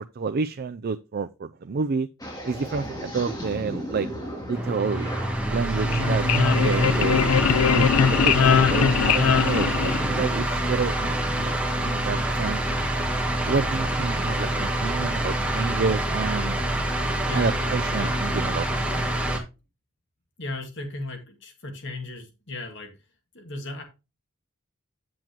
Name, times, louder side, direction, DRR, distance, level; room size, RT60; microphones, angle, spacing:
voice 1, 0.0-2.1 2.5-4.1 4.5-5.1 5.5-6.3 6.6-7.2 7.7-8.3 8.7-11.5 11.8-12.6 13.4-16.6 17.3-18.7, right 4 dB, 45° right, 0.4 m, -29 dB
sound 1, 2.2-10.3, equal, 15° left, 2.9 m, -34 dB
sound 2, 4.5-19.4, right 1 dB, 5° right, 2.0 m, -26 dB
sound 3, 5.7-10.5, left 7 dB, 85° left, 0.4 m, -21 dB
voice 2, 20.4-22.9 23.3-23.8, left 2 dB, 55° left, 2.1 m, -36 dB
8.8 x 7.8 x 3.0 m
head